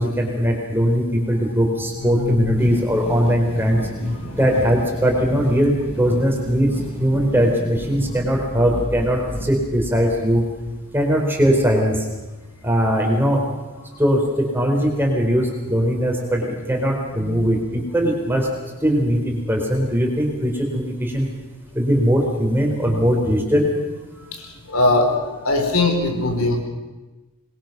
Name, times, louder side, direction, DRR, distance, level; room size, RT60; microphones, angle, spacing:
voice 1, 0.0-3.8 4.4-6.7 7.0-10.4 10.9-12.1 12.6-13.4 14.0-18.5 18.8-21.3 21.7-23.7, equal, 10° right, 0 dB, 4.4 m, -20 dB
voice 2, 2.0-2.7 4.1-4.4 17.1-17.5 22.8-23.0 24.2-26.6, left 2 dB, 70° left, 3 dB, 4.4 m, -22 dB
sound 1, 2.6-11.0, equal, 30° left, 4.7 m, -33 dB
25.5 x 21.5 x 6.2 m, 1.2 s
head